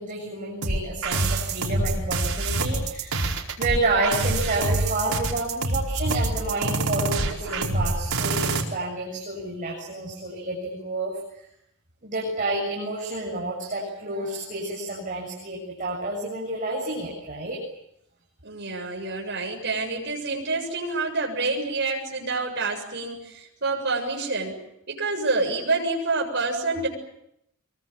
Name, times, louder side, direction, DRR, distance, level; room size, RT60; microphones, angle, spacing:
voice 1, 0.0-3.3 3.6-11.5 12.0-17.6, right 2 dB, 40° right, -2 dB, 7.3 m, -29 dB
sound 1, 0.6-8.6, right 2 dB, 80° right, 4.8 m, -26 dB
voice 2, 18.4-24.6 24.9-26.9, right 3 dB, 55° right, 2 dB, 7.4 m, -27 dB
25.0 x 23.5 x 9.1 m, 0.78 s
head